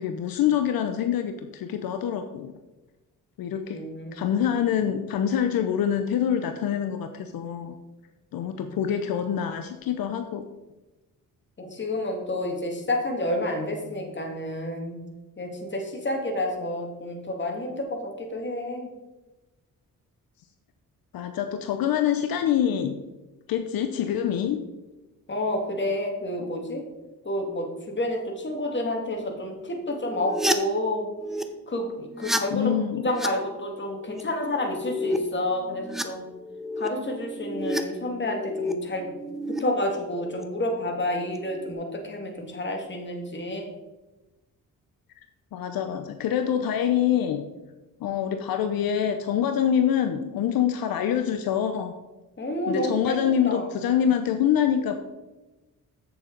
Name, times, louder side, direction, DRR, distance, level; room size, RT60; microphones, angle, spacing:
voice 1, 0.0-2.5 3.4-3.8 4.1-7.7 8.3-10.4 21.1-22.9 23.5-24.6 26.4-26.5 32.5-33.0 45.5-47.4 48.0-51.9 52.7-55.0, left 9 dB, 75° left, 7 dB, 0.7 m, -25 dB
voice 2, 3.7-4.3 11.6-15.0 15.4-18.9 25.3-26.8 27.2-31.1 31.7-32.7 33.0-36.2 36.8-39.1 39.6-43.7 52.4-53.2 53.4-53.7, left 1 dB, 30° left, 2 dB, 1.9 m, -29 dB
sound 1, 29.9-31.4 32.0-32.4 32.9-33.3 34.0-34.2 34.5-35.2 35.6-37.8 38.2-39.6 40.1-40.4 41.3-41.7, left 1 dB, ahead, 0.7 m, -31 dB
7.9 x 6.9 x 3.9 m, 1.1 s
cardioid pair, 85°, 35 cm